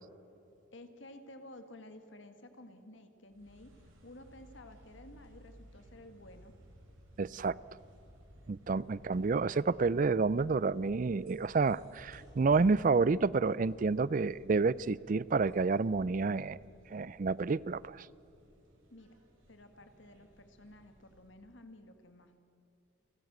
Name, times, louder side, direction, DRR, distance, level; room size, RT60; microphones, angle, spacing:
voice 1, 0.7-6.5 9.0-9.1 18.9-19.2 19.5-22.4, left 1 dB, 65° left, 8 dB, 1.7 m, -53 dB
sound 1, 3.3-21.7, equal, 80° right, 5.9 m, -59 dB
voice 2, 7.2-7.6 8.5-16.6 16.9-18.1, right 4 dB, 40° right, 21 dB, 0.4 m, -29 dB
29.5 x 14.0 x 8.0 m, 3.0 s
head